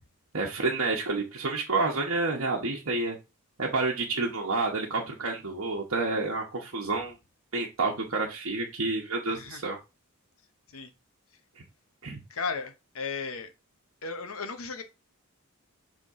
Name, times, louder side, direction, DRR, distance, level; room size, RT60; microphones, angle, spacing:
voice 1, 0.3-3.2 3.6-7.1 7.5-9.8 11.6-11.7 12.0-12.2, right 3 dB, 65° right, 1.1 m, -29 dB
voice 2, 9.3-9.6 10.7-10.9 12.3-13.5 14.0-14.8, left 4 dB, 70° left, 0.9 m, -35 dB
6.9 x 3.7 x 3.6 m
head